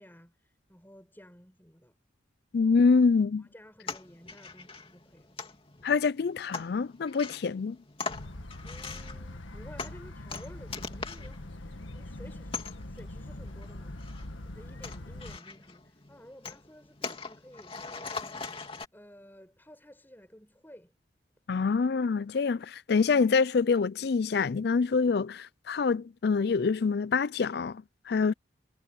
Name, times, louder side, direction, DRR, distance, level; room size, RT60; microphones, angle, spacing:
voice 1, 0.0-2.0 2.6-2.7 3.4-5.4 8.6-18.4 18.9-21.0, equal, 10° left, 6.5 m, -53 dB
voice 2, 2.5-3.5 5.8-7.8 21.5-28.3, left 4 dB, 55° left, 0.4 m, -26 dB
sound 1, 3.8-18.8, left 4 dB, 30° left, 2.7 m, -42 dB
sound 2, 8.1-15.4, left 1 dB, 90° left, 1.7 m, -43 dB
head